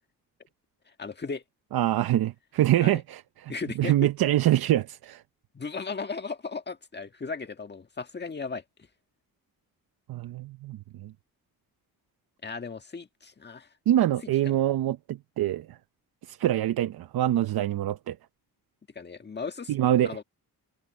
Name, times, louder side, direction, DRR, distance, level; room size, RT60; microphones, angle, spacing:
voice 1, 1.0-1.4 2.8-3.0 3.5-4.1 5.5-8.9 12.4-13.7 14.4-14.6 18.9-20.2, left 4 dB, 30° left, 1.6 m, -36 dB
voice 2, 1.7-3.5 3.8-5.2 10.1-11.1 13.9-15.8 16.2-18.2 19.7-20.2, right 13 dB, 70° right, 0.7 m, -25 dB
cardioid pair, 120°, 37 cm